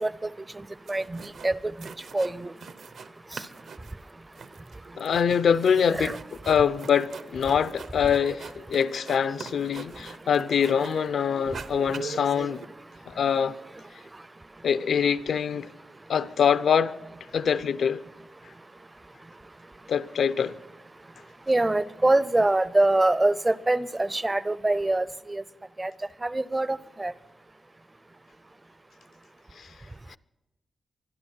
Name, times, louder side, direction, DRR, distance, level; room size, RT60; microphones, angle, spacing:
sound 1, 0.6-0.7 0.9-1.5 1.8-3.1 3.3-11.1 11.4-12.6, right 5 dB, 75° right, 0.8 m, -42 dB
voice 1, 0.9-2.5 5.9-6.2 21.5-25.4 25.8-25.9 26.2-27.1, right 2 dB, 20° right, 0.5 m, -24 dB
voice 2, 5.0-6.2 6.5-12.6 13.1-13.5 14.6-15.7 16.1-16.9 17.3-18.0 19.9-20.5, left 7 dB, 75° left, 0.6 m, -24 dB
25.0 x 11.0 x 4.4 m
wide cardioid pair, 125°, 0 cm